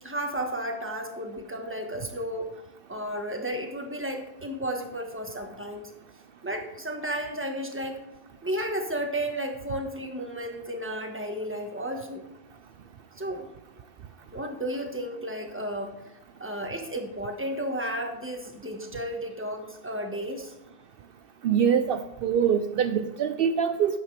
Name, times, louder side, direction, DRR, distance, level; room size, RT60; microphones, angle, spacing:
voice 1, 0.0-2.5 2.9-5.9 6.4-8.0 8.4-12.2 13.2-13.5 14.3-15.9 16.4-20.5, right 1 dB, 10° right, 3 dB, 1.4 m, -33 dB
voice 2, 21.4-24.0, right 8 dB, 70° right, 9 dB, 0.8 m, -24 dB
12.5 x 9.0 x 3.3 m, 0.94 s
omnidirectional pair, 1.0 m